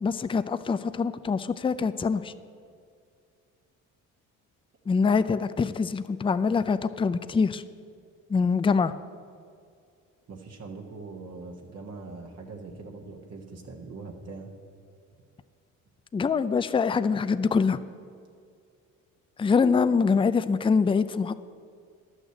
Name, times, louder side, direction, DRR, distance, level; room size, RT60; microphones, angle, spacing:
voice 1, 0.0-2.3 4.9-7.6 8.3-8.9 16.1-17.8 19.4-21.3, left 5 dB, 15° left, 13 dB, 0.4 m, -24 dB
voice 2, 10.3-14.5, right 3 dB, 50° right, 1 dB, 1.5 m, -42 dB
11.5 x 6.5 x 7.9 m, 2.3 s
cardioid pair, 80°, 32 cm